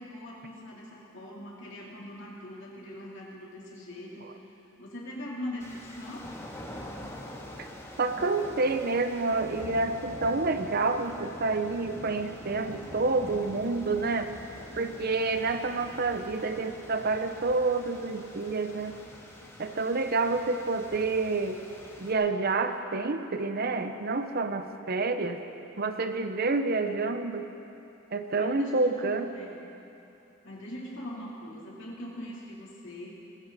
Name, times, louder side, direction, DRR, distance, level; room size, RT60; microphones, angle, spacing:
voice 1, 0.0-6.3 28.3-29.6 30.4-33.2, left 1 dB, 65° left, -5 dB, 3.5 m, -42 dB
sound 1, 5.6-22.1, equal, 15° left, 1.7 m, -45 dB
voice 2, 8.0-14.3 14.8-19.0 19.6-21.6 22.0-25.4 25.8-27.5 28.1-29.3, right 3 dB, 50° right, 8 dB, 0.8 m, -28 dB
20.5 x 16.0 x 4.2 m, 2.8 s
head